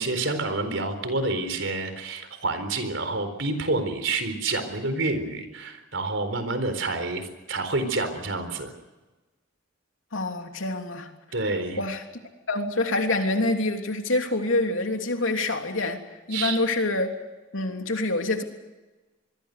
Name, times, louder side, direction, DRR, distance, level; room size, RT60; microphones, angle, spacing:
voice 1, 0.0-8.7 11.3-11.8 16.3-16.6, right 2 dB, 70° right, 9 dB, 4.1 m, -28 dB
voice 2, 10.1-11.1 11.8-12.0 12.5-16.0 16.3-17.1 17.5-18.4, left 2 dB, 90° left, 4 dB, 3.2 m, -26 dB
26.5 x 21.5 x 6.8 m, 1.1 s
head